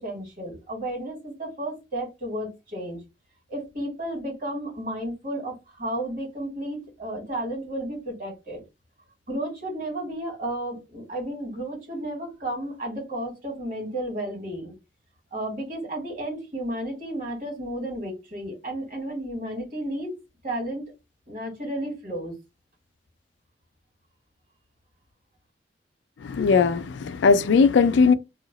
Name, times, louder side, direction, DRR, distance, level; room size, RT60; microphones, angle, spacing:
voice 1, 0.0-3.0 3.5-8.6 9.3-14.7 15.3-20.2 20.4-20.9 21.3-22.3, right 1 dB, 50° right, 1.7 m, -32 dB
voice 2, 26.2-28.1, left 5 dB, 90° left, 0.4 m, -19 dB
2.8 x 2.0 x 3.8 m
head